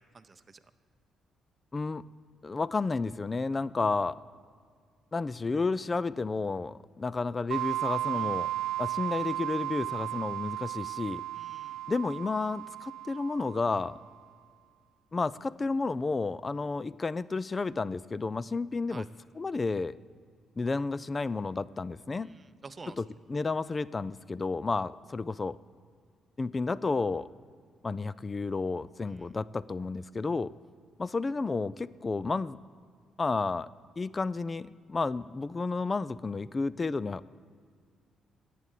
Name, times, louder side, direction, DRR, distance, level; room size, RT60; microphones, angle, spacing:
voice 1, 0.1-0.6 8.1-8.4 11.4-11.8 18.9-19.1 22.2-23.0 29.1-29.3, right 4 dB, 30° right, 11 dB, 0.6 m, -49 dB
voice 2, 1.7-2.0 2.4-4.2 5.1-8.5 8.8-11.2 11.9-14.0 15.1-19.1 19.3-20.0 20.6-22.3 23.0-25.6 26.4-27.3 27.8-30.5 31.0-32.6 33.2-33.7 34.0-37.4, left 3 dB, 30° left, 19 dB, 0.3 m, -31 dB
sound 1, 7.5-14.0, right 14 dB, 85° right, 0.3 m, -35 dB
11.5 x 8.4 x 8.3 m, 2.1 s
cardioid pair, 90°, 0 cm